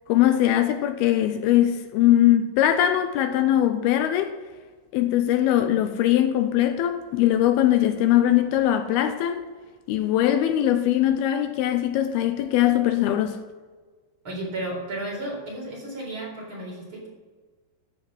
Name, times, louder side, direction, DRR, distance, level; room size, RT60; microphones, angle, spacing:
voice 1, 0.1-4.4 4.9-9.4 9.9-13.4, left 12 dB, 80° left, 2.5 m, -21 dB
voice 2, 14.2-17.1, right 1 dB, 30° right, 4.7 m, -33 dB
14.0 x 5.8 x 7.7 m
omnidirectional pair, 4.6 m